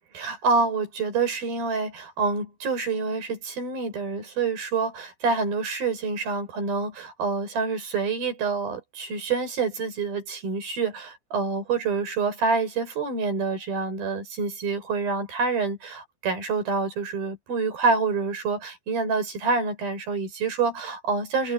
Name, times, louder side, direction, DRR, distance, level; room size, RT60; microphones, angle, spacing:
voice 1, 0.1-21.5, right 4 dB, 70° right, 7.1 m, -27 dB
omnidirectional pair, 4.4 m